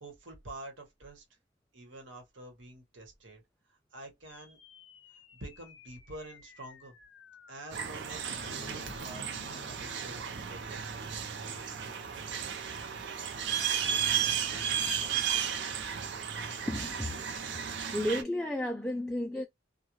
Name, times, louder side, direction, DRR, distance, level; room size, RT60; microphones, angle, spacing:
voice 1, 0.0-1.2 1.7-3.4 3.9-4.6 5.3-6.9 7.5-11.1 11.4-11.6, right 1 dB, 85° right, 1.1 m, -47 dB
sound 1, 4.3-12.8, left 3 dB, 75° left, 0.5 m, -54 dB
sound 2, 7.7-18.2, right 8 dB, 65° right, 0.5 m, -34 dB
voice 2, 16.7-17.6 17.9-19.5, left 1 dB, ahead, 0.3 m, -33 dB
2.4 x 2.2 x 3.0 m
head